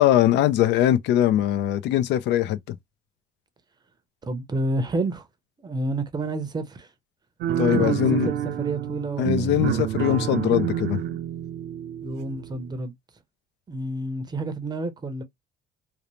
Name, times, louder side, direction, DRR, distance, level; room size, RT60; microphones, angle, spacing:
voice 1, 0.0-2.8 7.6-8.3 9.2-11.0, left 12 dB, 75° left, 0.4 m, -21 dB
voice 2, 4.2-5.3 5.6-6.9 7.7-8.0 8.2-9.7 12.0-12.9 13.7-15.2, right 2 dB, 20° right, 0.6 m, -29 dB
sound 1, 7.4-12.7, right 10 dB, 70° right, 0.5 m, -28 dB
2.6 x 2.0 x 3.0 m
cardioid pair, 135°, 18 cm